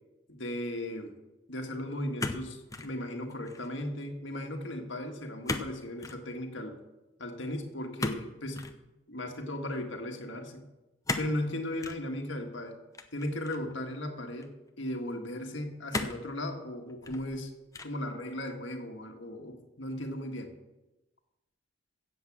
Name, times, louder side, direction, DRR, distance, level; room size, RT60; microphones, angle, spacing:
voice 1, 0.3-1.2 1.5-6.8 7.2-8.7 9.1-10.7 11.2-12.8 13.1-17.5 17.8-20.5, left 1 dB, 70° left, 4 dB, 1.7 m, -36 dB
sound 1, 2.2-2.9 3.3-3.7 5.5-5.7 6.0-6.2 8.0-8.8 11.0-11.4 11.8-12.0 12.9-13.7 14.4-14.5 15.9-16.3 16.9-17.4 17.7-18.1, left 2 dB, 15° left, 0.7 m, -35 dB
16.0 x 7.9 x 6.1 m, 1.0 s
head